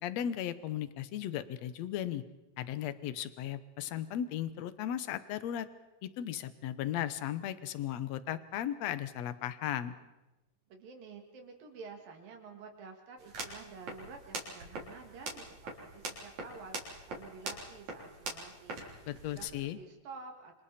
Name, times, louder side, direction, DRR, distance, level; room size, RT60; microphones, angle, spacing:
voice 1, 0.0-2.2 2.6-5.7 6.0-9.9 19.1-19.8, left 11 dB, 65° left, 13 dB, 1.8 m, -36 dB
voice 2, 10.7-19.5 19.8-20.6, right 4 dB, 85° right, 3 dB, 4.2 m, -50 dB
sound 1, 13.2-19.5, right 3 dB, 55° right, 4.7 m, -43 dB
28.0 x 25.5 x 4.3 m, 1.0 s
omnidirectional pair, 3.9 m